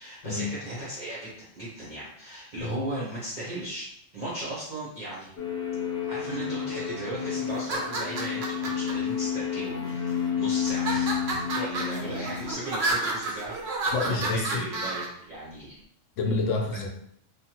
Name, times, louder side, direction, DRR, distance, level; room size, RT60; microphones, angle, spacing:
voice 1, 0.0-3.9 4.1-5.3 5.9-15.8 16.7-16.8, right 1 dB, 45° right, -8 dB, 0.8 m, -37 dB
sound 1, 5.4-12.5, left 8 dB, 55° left, 0.9 m, -30 dB
sound 2, 7.5-8.9 9.6-10.2 10.7-15.1, right 2 dB, 75° right, 1.0 m, -31 dB
voice 2, 13.9-14.6 16.2-16.9, left 3 dB, 80° left, 2 dB, 0.9 m, -28 dB
3.0 x 2.1 x 2.8 m, 0.70 s
omnidirectional pair, 1.3 m